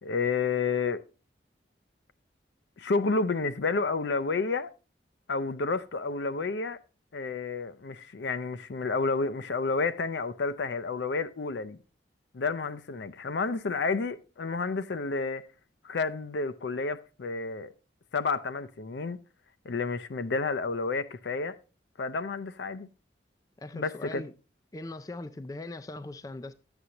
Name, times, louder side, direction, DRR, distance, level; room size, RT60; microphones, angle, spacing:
voice 1, 0.0-1.0 2.8-4.7 5.3-6.8 7.1-11.8 12.3-15.5 15.8-17.7 18.1-19.2 19.6-21.6 22.0-22.9 23.7-24.3, left 4 dB, 75° left, 0.5 m, -30 dB
voice 2, 23.6-24.3 24.7-26.5, left 2 dB, 20° left, 0.3 m, -40 dB
11.0 x 7.9 x 2.9 m
head